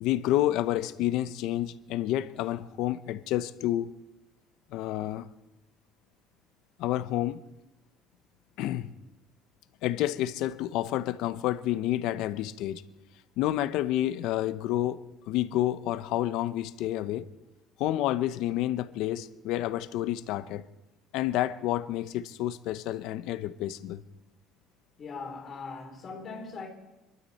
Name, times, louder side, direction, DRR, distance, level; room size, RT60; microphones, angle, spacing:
voice 1, 0.0-3.9 4.7-5.3 6.8-7.4 8.6-8.9 9.8-12.8 13.4-15.0 15.3-17.3 17.8-20.6 21.1-24.0, left 13 dB, 65° left, 0.7 m, -29 dB
voice 2, 25.0-26.7, left 4 dB, 30° left, 3.5 m, -40 dB
26.5 x 12.5 x 4.2 m
cardioid pair, 160°, 0 cm